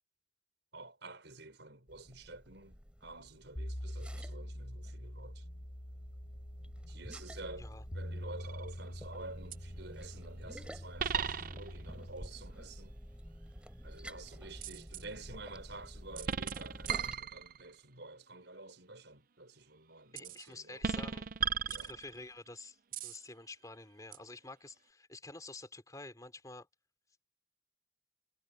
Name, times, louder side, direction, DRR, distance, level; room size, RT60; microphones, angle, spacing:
voice 1, 0.7-5.4 6.9-13.0 13.8-20.8 21.7-22.0, right 2 dB, 65° right, 6.1 m, -50 dB
sound 1, 1.9-17.2, equal, 5° right, 4.4 m, -51 dB
sound 2, 3.6-12.3, equal, 40° left, 2.2 m, -45 dB
sound 3, 8.4-8.8 9.5-9.6 11.0-11.9 14.6-15.0 16.2-17.8 20.2-20.4 20.8-22.4 22.9-23.2 24.1-24.2, right 7 dB, 45° right, 0.5 m, -36 dB
voice 2, 20.1-21.3 21.7-22.8 23.0-26.7, left 2 dB, 20° left, 3.5 m, -49 dB
head